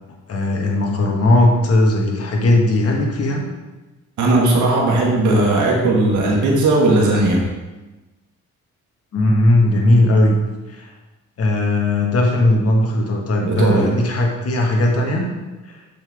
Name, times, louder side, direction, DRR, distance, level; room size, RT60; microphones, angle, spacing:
voice 1, 0.3-3.5 9.1-10.3 10.7-10.9 11.4-15.3 15.7-15.8, left 1 dB, 50° left, 0 dB, 1.6 m, -17 dB
voice 2, 4.2-7.4 13.5-13.9, right 2 dB, 75° right, -1 dB, 1.6 m, -16 dB
7.2 x 5.8 x 3.5 m, 1.1 s
cardioid pair, 90°, 30 cm